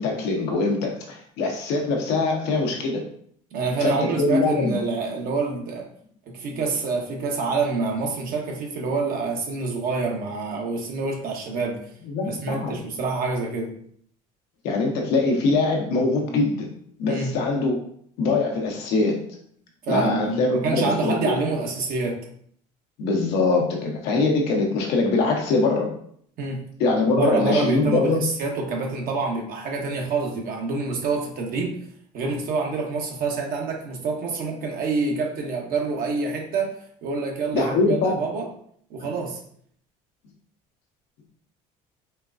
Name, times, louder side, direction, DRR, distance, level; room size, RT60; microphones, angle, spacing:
voice 1, 0.0-3.0 3.8-4.8 12.0-12.7 14.6-16.7 17.0-17.8 18.2-19.2 19.9-21.3 23.0-25.9 26.8-28.2 37.5-38.2, left 3 dB, 75° left, 1 dB, 0.9 m, -23 dB
voice 2, 3.5-5.9 6.3-11.8 12.2-13.7 17.1-17.3 19.8-22.2 26.4-26.6 27.1-31.8 32.1-36.7 37.0-38.5 38.9-39.4, right 4 dB, 55° right, 0 dB, 1.1 m, -27 dB
4.4 x 2.2 x 2.5 m, 0.62 s
supercardioid pair, 95°, 17 cm